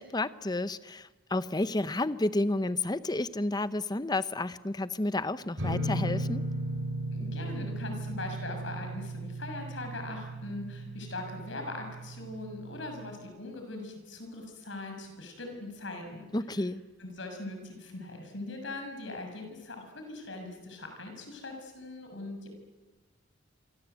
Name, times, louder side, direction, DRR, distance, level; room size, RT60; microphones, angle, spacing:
voice 1, 0.0-6.4 16.3-16.8, left 2 dB, 20° left, 14 dB, 0.8 m, -31 dB
sound 1, 5.6-13.2, right 1 dB, 60° right, 4.7 m, -36 dB
voice 2, 7.1-16.3 16.6-16.7 17.0-22.5, left 2 dB, 70° left, 4 dB, 6.5 m, -41 dB
27.5 x 25.0 x 8.2 m, 1.2 s
head